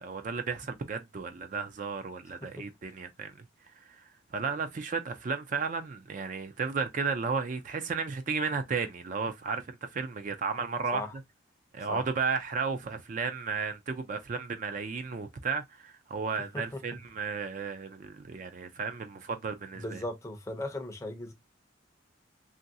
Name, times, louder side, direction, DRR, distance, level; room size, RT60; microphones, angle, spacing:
voice 1, 0.0-3.4 3.8-4.0 4.3-11.0 11.7-20.0, right 5 dB, 40° right, 0.3 m, -34 dB
voice 2, 19.8-21.3, left 1 dB, 15° left, 0.5 m, -37 dB
3.0 x 2.5 x 2.6 m
head